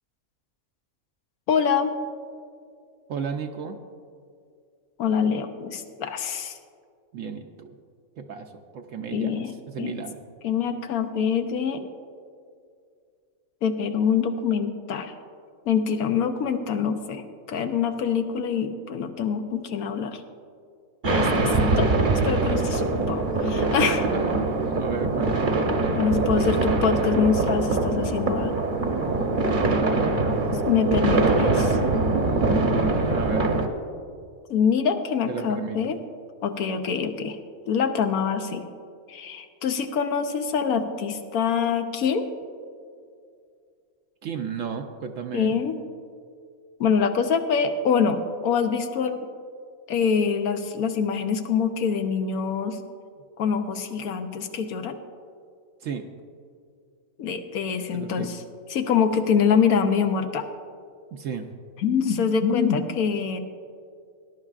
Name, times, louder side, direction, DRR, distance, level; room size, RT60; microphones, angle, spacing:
voice 1, 1.5-1.9 5.0-6.6 9.1-9.5 9.8-10.0 10.4-11.9 13.6-15.1 15.7-17.2 17.5-20.2 21.1-21.9 22.2-24.1 25.9-28.5 30.7-31.8 34.5-36.0 36.4-37.4 37.7-38.6 39.1-42.3 45.3-45.8 46.8-49.3 49.9-52.8 53.4-55.0 57.2-58.4 58.7-60.5 61.8-63.4, left 6 dB, 90° left, 6 dB, 1.2 m, -25 dB
voice 2, 3.1-3.8 7.1-7.7 8.2-10.2 24.1-24.5 24.8-25.5 33.1-33.5 35.3-36.0 44.2-45.6 55.8-56.1 57.9-58.3 61.1-61.5, right 6 dB, 70° right, 4 dB, 1.0 m, -33 dB
sound 1, 21.0-33.7, right 3 dB, 40° right, 0.9 m, -23 dB
19.0 x 10.5 x 2.4 m, 2.3 s
omnidirectional pair, 1.5 m